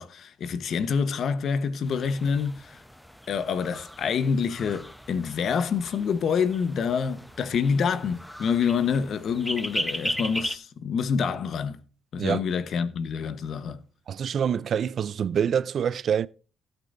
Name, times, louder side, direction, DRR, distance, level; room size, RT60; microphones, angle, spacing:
voice 1, 0.0-2.8 3.3-11.8 12.1-13.8, left 6 dB, 60° left, 1.0 m, -27 dB
sound 1, 1.9-10.6, equal, 5° left, 0.8 m, -37 dB
voice 2, 14.1-16.3, right 8 dB, 60° right, 0.4 m, -26 dB
17.5 x 8.2 x 2.6 m
cardioid pair, 90°, 0 cm